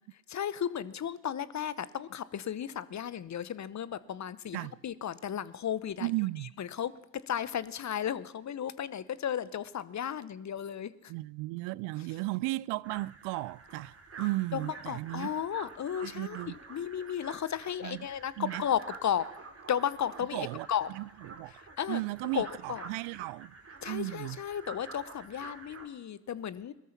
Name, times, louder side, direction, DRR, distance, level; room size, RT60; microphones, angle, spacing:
voice 1, 0.3-6.1 6.6-6.9 7.3-11.1 14.5-16.4 16.7-19.3 19.7-20.9 21.8-22.0 22.3-22.8 23.8-26.7, left 9 dB, 35° left, 0.9 m, -34 dB
voice 2, 6.0-6.5 11.1-15.3 16.0-16.5 17.8-18.1 18.4-18.6 20.3-21.5 21.9-23.5 23.9-24.4, right 21 dB, 65° right, 0.5 m, -35 dB
sound 1, 12.8-25.9, right 4 dB, 30° right, 2.7 m, -49 dB
18.5 x 13.0 x 5.9 m
hypercardioid pair, 60°, 46 cm